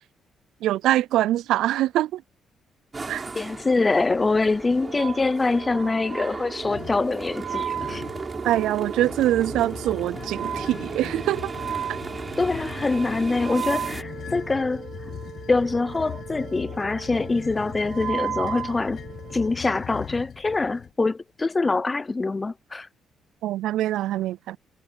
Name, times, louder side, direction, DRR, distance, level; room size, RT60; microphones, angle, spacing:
voice 1, 0.6-2.2 3.1-3.2 8.4-11.5 23.4-24.6, right 14 dB, 85° right, 0.3 m, -24 dB
sound 1, 2.9-14.0, right 3 dB, 30° right, 5.8 m, -36 dB
voice 2, 3.3-8.0 12.4-14.9 15.5-19.0 19.3-22.9, left 3 dB, 25° left, 0.5 m, -24 dB
Wind instrument woodwind instrument, 4.8-19.5, right 9 dB, 70° right, 4.8 m, -36 dB
sound 2, 6.6-7.1 7.7-8.3 8.9-20.9, left 9 dB, 60° left, 1.0 m, -39 dB
cardioid pair, 90°, 0 cm